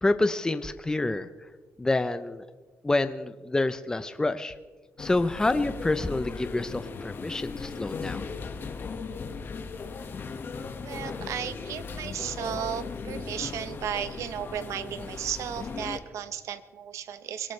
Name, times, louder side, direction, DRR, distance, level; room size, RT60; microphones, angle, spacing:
voice 1, 0.0-1.3 1.8-2.4 2.8-4.5 5.0-8.2, left 2 dB, 15° left, 11 dB, 0.6 m, -27 dB
sound 1, 5.0-16.0, left 4 dB, 45° left, 1.6 m, -37 dB
voice 2, 10.8-17.5, right 9 dB, 80° right, 12 dB, 1.0 m, -34 dB
25.0 x 17.5 x 3.2 m, 1.4 s
cardioid pair, 120°, 5 cm